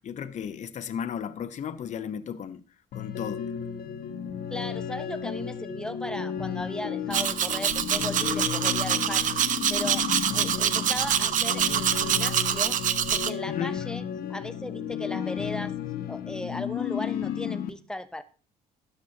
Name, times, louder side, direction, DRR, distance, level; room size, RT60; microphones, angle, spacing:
voice 1, 0.0-2.6 2.9-3.4 13.5-13.7, left 8 dB, 45° left, 0.8 m, -34 dB
sound 1, 2.9-17.7, left 9 dB, 65° left, 1.3 m, -33 dB
voice 2, 4.5-10.1 10.3-12.8 13.1-14.0 14.3-15.7 16.1-18.2, left 1 dB, 5° left, 0.9 m, -37 dB
Domestic sounds home sounds, 7.1-13.3, right 9 dB, 50° right, 0.6 m, -25 dB
12.5 x 9.4 x 2.9 m
cardioid pair, 110°, 17 cm